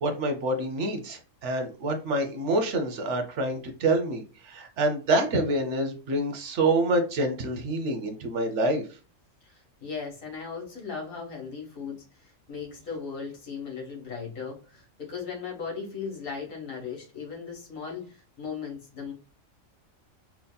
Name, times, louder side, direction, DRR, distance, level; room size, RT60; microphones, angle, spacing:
voice 1, 0.0-8.8, right 2 dB, 65° right, 5 dB, 0.9 m, -27 dB
voice 2, 9.4-19.1, left 5 dB, 70° left, -1 dB, 1.7 m, -37 dB
4.4 x 2.7 x 2.2 m, 0.35 s
omnidirectional pair, 1.4 m